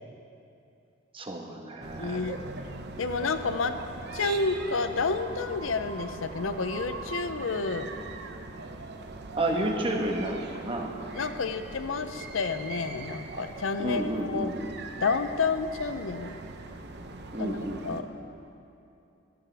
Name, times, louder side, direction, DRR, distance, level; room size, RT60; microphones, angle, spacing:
voice 1, 1.1-2.3 9.4-10.9 13.8-14.5 17.3-17.8, right 1 dB, 25° right, 1 dB, 1.2 m, -31 dB
sound 1, 1.8-18.0, right 3 dB, 60° right, 0.8 m, -41 dB
voice 2, 2.0-2.4 3.0-3.7 4.1-7.9 11.1-14.5 15.0-16.3 17.4-18.1, left 4 dB, 90° left, 9 dB, 0.6 m, -30 dB
15.0 x 13.5 x 3.4 m, 2.7 s
head